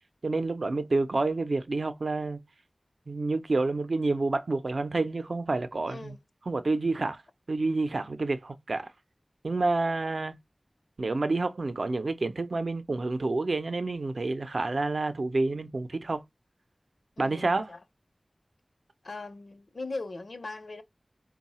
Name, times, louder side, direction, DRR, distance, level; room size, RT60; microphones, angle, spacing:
voice 1, 0.2-2.4 3.1-6.2 6.5-7.2 7.5-8.9 9.4-10.3 11.0-16.2 17.2-17.7, right 3 dB, 75° right, 0.5 m, -28 dB
voice 2, 5.9-6.2 17.2-17.8 19.0-20.8, left 3 dB, 80° left, 0.7 m, -39 dB
4.6 x 2.2 x 4.1 m
wide cardioid pair, 65°, 0 cm